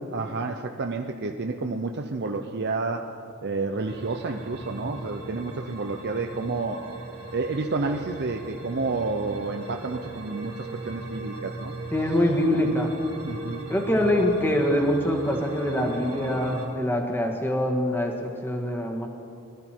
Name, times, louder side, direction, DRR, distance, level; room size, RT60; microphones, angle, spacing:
voice 1, 0.1-3.1 3.4-7.0 7.3-11.7 13.2-13.7, right 3 dB, 50° right, 4 dB, 0.6 m, -30 dB
sound 1, 3.9-16.7, right 2 dB, 85° right, 3.8 m, -39 dB
voice 2, 11.9-12.9 13.7-19.1, left 1 dB, 10° left, 1 dB, 1.5 m, -24 dB
21.5 x 13.0 x 4.5 m, 2.5 s
head